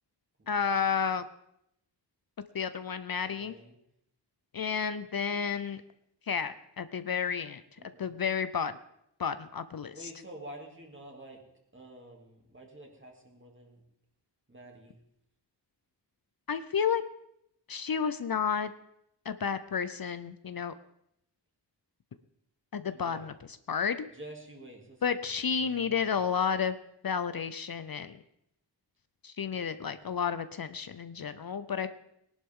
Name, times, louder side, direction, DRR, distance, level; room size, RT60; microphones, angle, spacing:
voice 1, 0.5-1.3 2.5-3.5 4.5-5.8 6.3-7.6 8.0-8.8 9.2-10.1 16.5-17.0 17.7-18.7 19.3-20.7 22.7-23.3 23.7-24.0 25.0-26.8 27.0-28.1 29.2-31.9, left 6 dB, 55° left, 12 dB, 0.6 m, -31 dB
voice 2, 3.3-3.7 7.8-8.2 9.9-11.4 11.7-13.8 14.5-15.0 22.9-23.3 24.1-26.3 29.4-30.0, right 1 dB, 25° right, 0 dB, 2.7 m, -49 dB
19.5 x 11.5 x 3.7 m, 0.78 s
wide cardioid pair, 90°, 43 cm